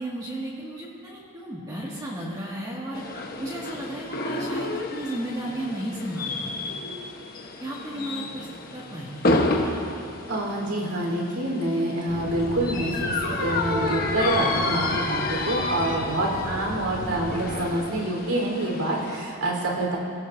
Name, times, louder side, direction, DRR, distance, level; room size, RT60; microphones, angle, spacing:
voice 1, 0.0-3.0 3.4-6.6 7.6-8.5 8.7-9.2, right 1 dB, 20° right, -6 dB, 2.1 m, -34 dB
sound 1, 2.9-19.2, left 2 dB, 40° left, 1.3 m, -30 dB
voice 2, 10.3-20.0, right 1 dB, 85° right, -2 dB, 4.2 m, -27 dB
sound 2, 12.1-17.6, left 1 dB, 85° left, 4.6 m, -35 dB
27.5 x 17.0 x 2.8 m, 2.5 s
head